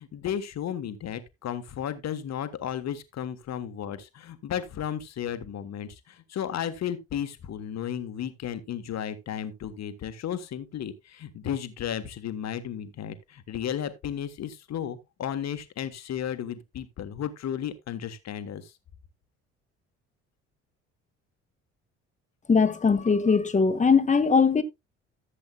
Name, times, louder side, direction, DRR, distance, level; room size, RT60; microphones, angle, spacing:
voice 1, 0.0-18.7, left 9 dB, 50° left, 1.3 m, -34 dB
voice 2, 22.5-24.6, left 5 dB, 20° left, 1.2 m, -21 dB
14.5 x 7.7 x 2.3 m
hypercardioid pair, 50°, 35 cm